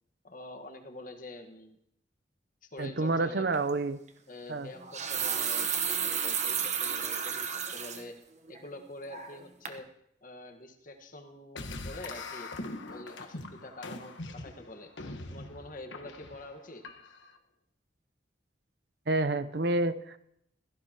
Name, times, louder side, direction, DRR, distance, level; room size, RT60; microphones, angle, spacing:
voice 1, 0.2-1.8 2.6-3.4 4.3-5.7 6.0-8.2 8.5-9.9 10.2-12.5 12.9-14.9 15.3-16.8, left 2 dB, 45° left, 5 dB, 1.5 m, -46 dB
voice 2, 2.8-4.0 4.5-4.7 19.1-20.2, right 2 dB, 60° right, 12 dB, 0.7 m, -28 dB
sound 1, 3.5-3.7 4.7-8.0 8.5-8.6 9.1-9.4 9.7-9.8, right 7 dB, 40° right, 1.1 m, -32 dB
sound 2, 11.5-17.4, left 2 dB, 80° left, 1.2 m, -42 dB
16.5 x 14.5 x 3.0 m, 0.75 s
head